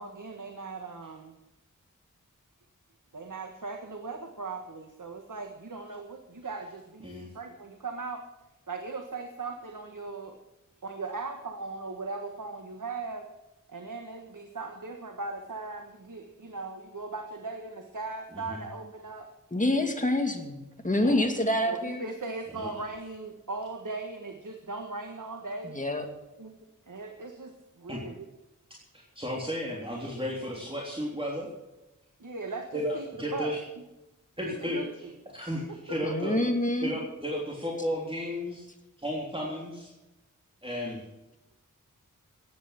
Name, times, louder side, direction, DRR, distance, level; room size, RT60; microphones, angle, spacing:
voice 1, 0.0-1.3 3.1-7.1 7.3-8.2 8.7-10.4 10.8-13.3 13.7-19.3 21.7-25.8 26.4-26.5 26.9-28.2 32.2-33.5 34.5-34.9 35.9-36.0, right 3 dB, 75° right, 4 dB, 1.5 m, -38 dB
voice 2, 18.3-18.6 21.0-21.2 22.5-22.7 27.9-28.0 28.9-31.5 32.7-33.7 34.4-36.4 36.8-38.7 39.0-39.9 40.6-41.0, equal, 15° right, -3 dB, 3.4 m, -34 dB
voice 3, 19.5-22.0 25.6-26.0 36.0-37.0, left 1 dB, 25° left, 4 dB, 2.3 m, -27 dB
15.5 x 10.5 x 5.8 m, 0.99 s
wide cardioid pair, 65°, 32 cm